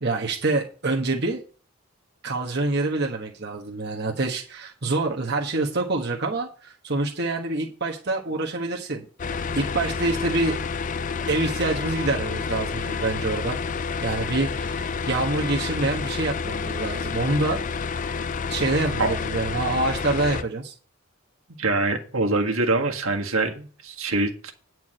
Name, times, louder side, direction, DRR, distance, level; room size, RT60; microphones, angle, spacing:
voice 1, 0.0-1.4 2.2-9.0 9.5-10.6 11.3-13.6 14.0-17.6 18.5-20.7, right 2 dB, 50° right, 1.3 m, -26 dB
sound 1, 9.2-20.4, left 5 dB, 35° left, 0.4 m, -29 dB
voice 2, 21.5-24.5, right 2 dB, 70° right, 1.7 m, -24 dB
9.4 x 4.7 x 7.7 m
head